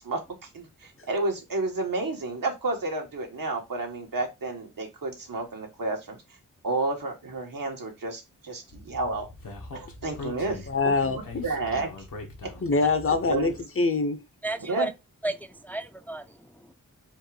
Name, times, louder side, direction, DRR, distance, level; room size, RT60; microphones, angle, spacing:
voice 1, 0.0-6.2 6.6-9.3 9.7-10.9 11.4-12.1 12.4-12.5 13.3-13.5 14.7-14.9, right 2 dB, 80° right, 1.5 m, -31 dB
Speech, 8.7-13.6, left 2 dB, 90° left, 1.3 m, -42 dB
voice 2, 10.7-11.5 12.6-14.2, left 3 dB, 40° left, 0.7 m, -24 dB
voice 3, 14.4-14.9 15.2-16.7, right 2 dB, 5° left, 0.4 m, -33 dB
4.4 x 2.5 x 4.7 m
wide cardioid pair, 75°, 33 cm